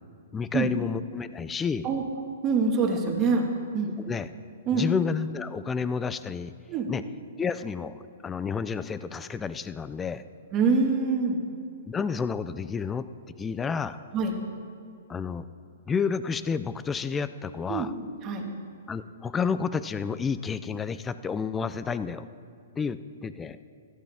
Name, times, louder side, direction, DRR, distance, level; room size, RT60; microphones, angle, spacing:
voice 1, 0.3-1.9 4.0-4.3 4.7-6.5 6.9-7.0 7.4-10.2 11.9-13.1 13.4-14.0 15.1-15.4 15.9-17.9 18.9-22.3 22.8-23.6, left 5 dB, 15° left, 14 dB, 0.4 m, -30 dB
voice 2, 2.4-3.4 3.7-3.9 4.7-4.9 6.7-6.9 10.5-11.4 14.1-14.3 17.7-17.9 18.2-18.5, right 4 dB, 30° right, 2 dB, 1.7 m, -25 dB
15.0 x 12.0 x 3.5 m, 2.4 s
hypercardioid pair, 135°, 0 cm